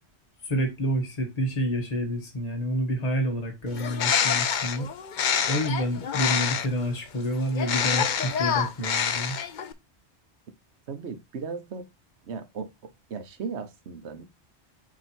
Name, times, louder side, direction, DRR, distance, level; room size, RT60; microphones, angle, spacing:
voice 1, 0.4-4.9 5.5-9.4, equal, 35° left, 1.6 m, -28 dB
Bird, 3.7-6.8 7.5-9.7, left 7 dB, 55° left, 0.7 m, -26 dB
voice 2, 10.9-11.8 12.3-14.2, right 5 dB, 75° right, 1.2 m, -36 dB
7.2 x 2.9 x 4.4 m
omnidirectional pair, 1.1 m